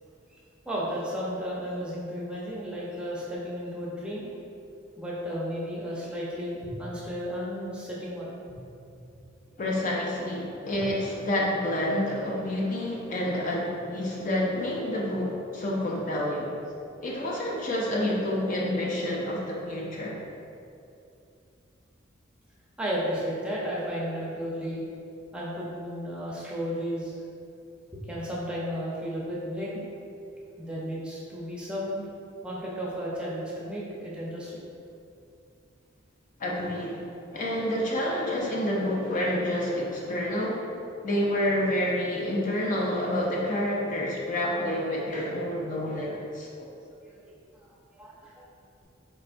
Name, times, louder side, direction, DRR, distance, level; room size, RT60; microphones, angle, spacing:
voice 1, 0.6-4.2 5.0-8.6 9.5-9.6 22.8-24.8 25.3-27.2 27.9-29.8 30.6-32.0 32.4-34.6 47.0-47.2 47.6-47.7 47.9-48.4, equal, 5° right, -6 dB, 0.6 m, -33 dB
voice 2, 9.6-16.5 17.0-20.2 36.4-40.7 41.0-46.7, left 1 dB, 40° left, -3 dB, 0.4 m, -28 dB
4.1 x 3.3 x 2.5 m, 2.6 s
head